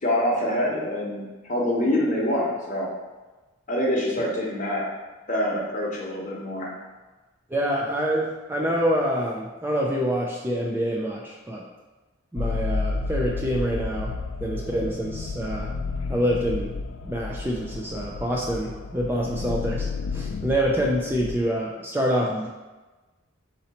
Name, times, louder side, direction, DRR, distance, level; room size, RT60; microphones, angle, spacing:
voice 1, 0.0-2.9 3.7-4.9 5.3-6.7, left 1 dB, 35° left, -3 dB, 0.9 m, -25 dB
voice 2, 7.5-11.6 12.3-14.1 14.4-15.7 16.1-16.7 17.0-19.9 20.1-22.5, equal, 10° right, -2 dB, 0.3 m, -26 dB
sound 1, 12.3-21.4, left 4 dB, 75° left, 0.3 m, -31 dB
4.0 x 2.9 x 4.1 m, 1.2 s
head